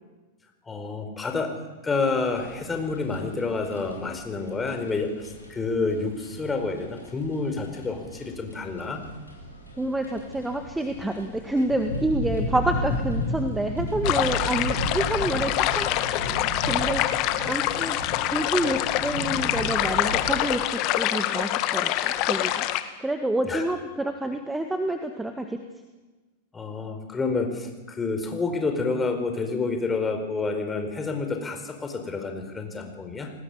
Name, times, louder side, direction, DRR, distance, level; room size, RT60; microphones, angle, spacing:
voice 1, 0.6-1.5 1.8-9.0 23.5-23.6 26.5-33.3, left 3 dB, 15° left, 5 dB, 4.7 m, -29 dB
sound 1, 2.2-20.4, left 1 dB, 85° left, 6.9 m, -34 dB
voice 2, 9.8-15.9 16.7-18.0 18.3-22.7 23.0-25.6, right 1 dB, 5° right, 6 dB, 1.8 m, -28 dB
sound 2, 14.0-22.8, left 14 dB, 40° left, 1.9 m, -26 dB
29.0 x 19.5 x 7.1 m, 1.2 s
figure-of-eight pair, 95°, 0 cm